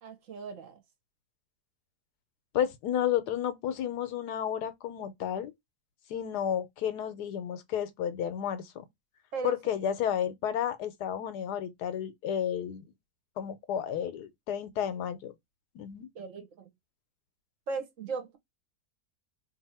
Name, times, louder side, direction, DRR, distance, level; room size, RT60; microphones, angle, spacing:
voice 1, 0.0-0.8 9.3-9.6 16.1-16.7 17.7-18.4, right 4 dB, 60° right, 1.1 m, -37 dB
voice 2, 2.5-5.5 6.1-8.9 9.4-12.8 13.4-15.3 15.7-16.1, left 9 dB, 90° left, 1.2 m, -32 dB
2.8 x 2.6 x 4.1 m
omnidirectional pair, 1.7 m